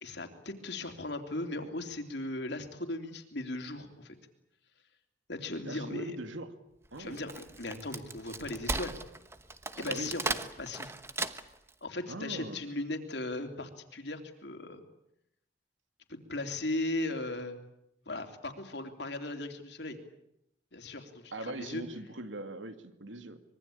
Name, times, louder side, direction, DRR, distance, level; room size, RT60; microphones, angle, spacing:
voice 1, 0.0-4.2 5.3-6.2 7.0-9.0 9.8-10.9 11.8-14.8 16.1-17.5 18.1-20.0 20.7-21.8, left 2 dB, 60° left, 6 dB, 3.2 m, -37 dB
voice 2, 5.6-6.5 6.9-7.3 9.8-10.2 12.1-12.7 21.3-23.4, right 2 dB, 80° right, 9 dB, 2.4 m, -41 dB
Wood, 7.0-11.7, right 3 dB, 15° right, 1.1 m, -36 dB
25.5 x 23.0 x 8.6 m, 0.81 s
head